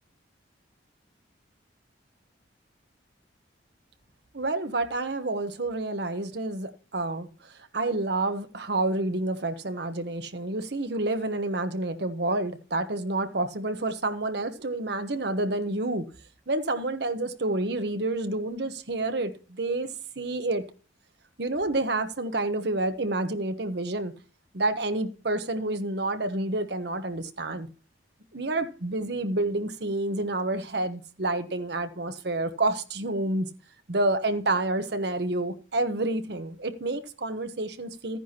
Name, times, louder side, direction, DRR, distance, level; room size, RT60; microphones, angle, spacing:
voice 1, 4.3-16.0 16.5-19.9 20.2-20.6 21.4-24.1 24.5-27.7 28.3-33.5 33.9-38.2, right 2 dB, 60° right, 1.0 m, -29 dB
13.5 x 10.0 x 2.9 m
head